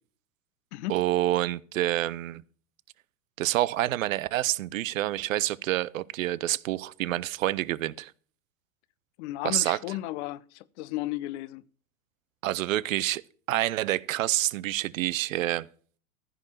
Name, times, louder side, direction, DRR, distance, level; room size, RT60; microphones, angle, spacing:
voice 1, 0.9-2.4 3.4-8.1 9.4-9.8 12.4-13.2 13.5-15.7, right 15 dB, 75° right, 0.7 m, -27 dB
voice 2, 9.2-11.6, left 16 dB, 55° left, 0.8 m, -34 dB
15.0 x 5.4 x 6.3 m
hypercardioid pair, 95°, 41 cm